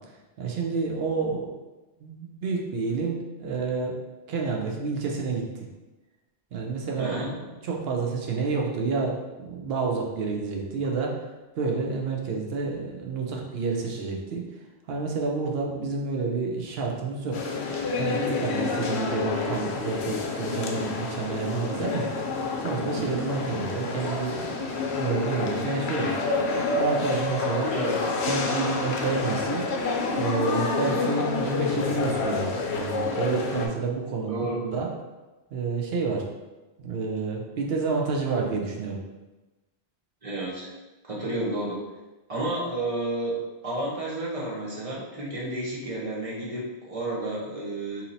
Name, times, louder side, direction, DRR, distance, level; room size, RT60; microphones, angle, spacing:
voice 1, 0.4-1.6 2.0-4.0 4.3-5.7 6.5-11.2 11.6-14.4 14.9-17.5 18.0-22.0 22.6-26.2 26.8-27.7 28.3-29.7 30.1-34.4 34.7-34.9 35.5-36.3 36.8-39.0, right 4 dB, 70° right, 0 dB, 0.8 m, -29 dB
voice 2, 7.0-7.3 27.7-28.1 34.2-34.8 40.2-40.7 41.0-41.8 42.3-43.4 43.6-48.0, right 2 dB, 35° right, -5 dB, 0.9 m, -31 dB
sound 1, 17.3-33.7, left 3 dB, 85° left, 0.8 m, -28 dB
2.8 x 2.8 x 3.9 m, 1.1 s
omnidirectional pair, 1.1 m